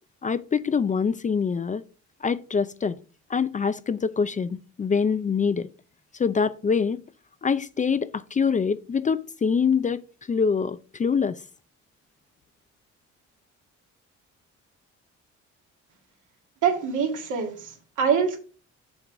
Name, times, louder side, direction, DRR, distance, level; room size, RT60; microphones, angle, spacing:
voice 1, 0.2-1.8 2.2-3.0 3.3-5.7 6.2-7.0 7.4-11.4, left 6 dB, 25° left, 0.4 m, -25 dB
voice 2, 16.6-18.4, right 6 dB, 80° right, 2.0 m, -25 dB
7.3 x 3.8 x 5.9 m
cardioid pair, 90°, 30 cm